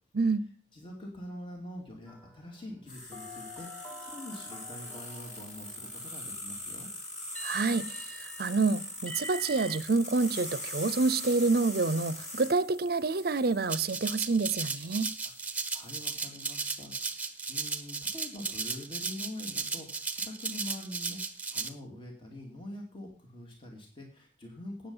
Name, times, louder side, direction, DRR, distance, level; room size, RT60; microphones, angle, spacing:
voice 1, 0.2-0.5 7.4-15.1, right 3 dB, 60° right, 17 dB, 0.7 m, -28 dB
voice 2, 0.7-6.9 15.7-24.9, left 1 dB, 30° left, 1 dB, 2.5 m, -45 dB
sound 1, 2.1-2.6 3.1-6.2 7.3-9.8, right 1 dB, 10° left, 1.9 m, -47 dB
sound 2, 2.9-16.1, left 1 dB, 45° left, 5.1 m, -42 dB
Rattle (instrument), 13.7-21.7, right 4 dB, 10° right, 1.1 m, -35 dB
18.0 x 7.4 x 5.6 m, 0.43 s
head